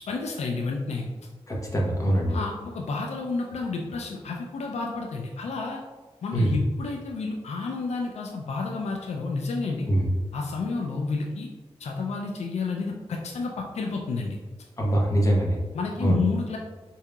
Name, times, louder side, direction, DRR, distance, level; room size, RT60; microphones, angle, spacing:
voice 1, 0.1-1.1 2.3-5.8 6.2-9.9 10.3-11.5 11.8-14.4 15.7-16.6, left 4 dB, 80° left, 0 dB, 0.4 m, -30 dB
voice 2, 1.5-2.4 6.3-6.5 9.9-10.0 14.8-15.6 16.0-16.2, right 1 dB, 30° left, -2 dB, 1.0 m, -23 dB
4.7 x 2.7 x 2.3 m, 1.3 s
cardioid pair, 55°, 11 cm